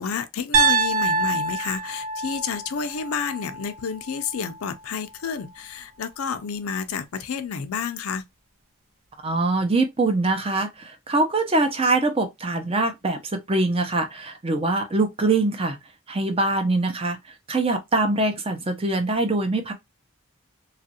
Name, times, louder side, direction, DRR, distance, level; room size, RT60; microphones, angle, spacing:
voice 1, 0.0-8.2, left 6 dB, 90° left, 0.5 m, -30 dB
Piano, 0.5-4.6, right 3 dB, 85° right, 0.8 m, -25 dB
voice 2, 9.2-15.8 16.1-17.2 17.5-19.7, right 2 dB, 25° right, 0.6 m, -23 dB
2.9 x 2.4 x 2.8 m
head